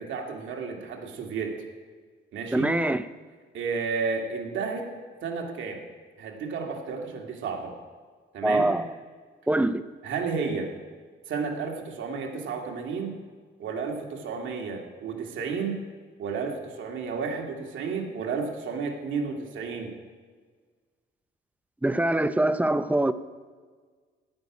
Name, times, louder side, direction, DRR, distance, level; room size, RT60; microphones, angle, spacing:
voice 1, 0.0-1.6 2.3-2.7 3.5-4.9 5.2-5.8 6.2-7.7 8.3-8.7 10.0-10.7 11.3-13.2 13.6-15.8 16.2-19.9, right 5 dB, 75° right, 2.3 m, -32 dB
voice 2, 2.5-3.0 8.4-8.9 9.5-9.9 21.8-23.1, right 1 dB, 5° right, 0.6 m, -23 dB
15.5 x 6.2 x 9.8 m
cardioid pair, 90°, 20 cm